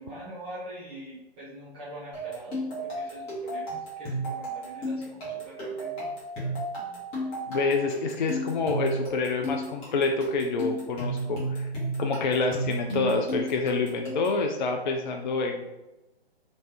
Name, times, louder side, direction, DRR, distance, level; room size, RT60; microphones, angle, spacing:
voice 1, 0.0-3.7 4.0-5.9, right 1 dB, 15° right, -11 dB, 0.9 m, -43 dB
sound 1, 2.1-14.4, right 1 dB, 20° left, 1.2 m, -33 dB
voice 2, 7.5-11.7 12.0-15.6, left 3 dB, 50° left, 3 dB, 0.4 m, -27 dB
3.2 x 3.1 x 2.8 m, 0.98 s
figure-of-eight pair, 135°, 32 cm